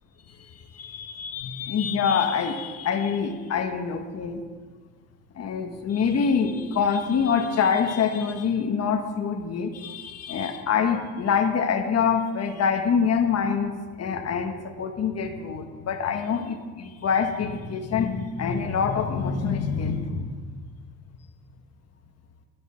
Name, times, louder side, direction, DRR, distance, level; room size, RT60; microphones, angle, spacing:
voice 1, 0.3-4.4 5.3-20.4, left 6 dB, 55° left, 4 dB, 1.3 m, -25 dB
11.0 x 11.0 x 5.7 m, 1.5 s
cardioid pair, 90°, 30 cm